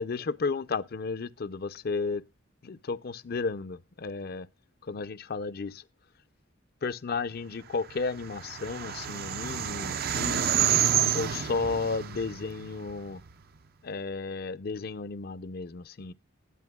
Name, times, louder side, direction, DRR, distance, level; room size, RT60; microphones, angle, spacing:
voice 1, 0.0-2.2 2.6-4.5 4.8-5.8 6.8-10.8 11.1-13.2 13.8-16.1, left 4 dB, 50° left, 0.5 m, -33 dB
sound 1, 7.9-13.3, right 9 dB, 50° right, 0.5 m, -29 dB
20.0 x 8.3 x 2.3 m
head